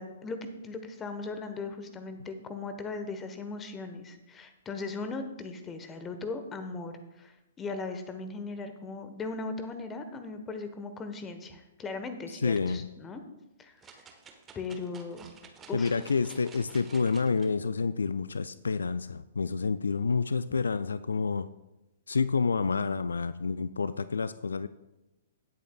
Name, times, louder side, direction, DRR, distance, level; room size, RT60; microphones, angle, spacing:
voice 1, 0.0-13.2 13.6-14.0 14.5-15.3 15.7-16.0, left 3 dB, 15° left, 8 dB, 1.1 m, -38 dB
voice 2, 12.4-12.9 15.7-21.5 22.1-24.7, left 4 dB, 70° left, 15 dB, 0.3 m, -28 dB
sound 1, 13.8-17.5 18.0-18.1, right 5 dB, 15° right, 1.1 m, -52 dB
17.0 x 8.3 x 2.3 m, 0.97 s
figure-of-eight pair, 115°, 0 cm